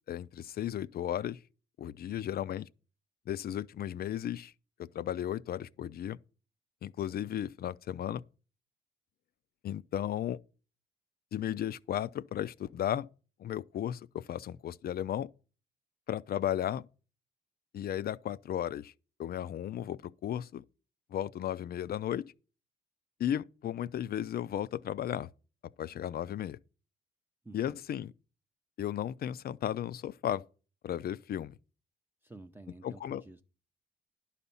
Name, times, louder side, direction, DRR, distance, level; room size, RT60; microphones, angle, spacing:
voice 1, 0.1-1.4 1.8-2.7 3.3-4.5 4.8-6.2 6.8-8.2 9.6-10.4 11.3-13.1 13.4-15.3 16.1-16.9 17.7-18.9 19.2-20.6 21.1-22.2 23.2-25.3 25.8-26.6 27.5-28.1 28.8-30.4 30.8-31.6 32.8-33.2, left 11 dB, 50° left, 0.4 m, -35 dB
voice 2, 2.1-2.4 27.4-27.8 32.2-33.4, right 2 dB, 10° right, 0.5 m, -51 dB
11.0 x 4.2 x 7.0 m
cardioid pair, 90°, 20 cm